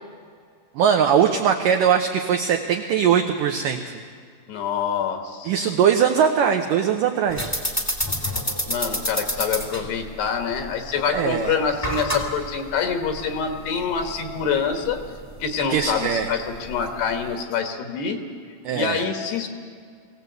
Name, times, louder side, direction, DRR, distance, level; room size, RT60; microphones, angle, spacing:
voice 1, 0.8-3.8 5.5-7.5 11.1-11.6 15.7-16.3 18.6-19.0, right 8 dB, 80° right, 4 dB, 1.9 m, -20 dB
voice 2, 4.5-5.5 8.7-15.0 15.4-18.2 18.7-19.5, left 6 dB, 70° left, 6 dB, 3.4 m, -26 dB
sound 1, 7.3-17.3, equal, 5° left, 1.2 m, -30 dB
22.5 x 17.0 x 8.2 m, 2.1 s
omnidirectional pair, 5.1 m